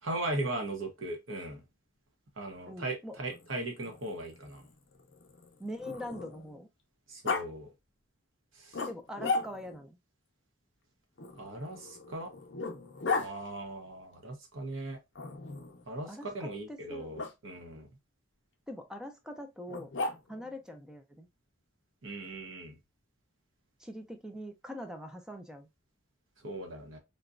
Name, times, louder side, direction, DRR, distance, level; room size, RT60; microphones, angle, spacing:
voice 1, 0.0-1.6 2.4-4.6 7.1-7.7 8.5-8.8 11.3-12.3 13.1-15.0 15.9-17.9 22.0-22.8 26.4-27.0, right 2 dB, 75° right, 1.0 m, -38 dB
voice 2, 2.7-3.1 5.6-6.7 8.9-10.0 16.1-17.1 18.7-19.9 20.3-21.3 23.8-25.7, equal, 5° right, 0.4 m, -43 dB
Growling, 3.2-6.6 7.2-7.4 8.7-9.8 11.2-13.3 15.1-15.8 17.1-17.3 19.7-20.5, left 4 dB, 60° left, 0.6 m, -36 dB
3.9 x 2.2 x 2.4 m
head